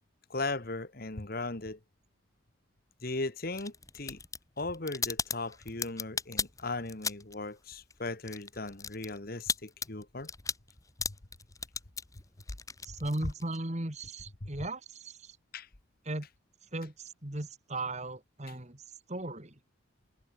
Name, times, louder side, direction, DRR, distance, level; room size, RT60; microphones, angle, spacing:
voice 1, 0.3-1.8 3.0-4.2 4.6-10.3 13.2-13.3 14.4-14.5 15.5-15.7, left 2 dB, 50° left, 1.6 m, -37 dB
sound 1, 3.5-7.5 7.7-13.6, left 5 dB, 15° left, 1.8 m, -37 dB
voice 2, 12.8-15.4 16.1-16.3 16.7-19.6, right 2 dB, 35° right, 2.3 m, -37 dB
head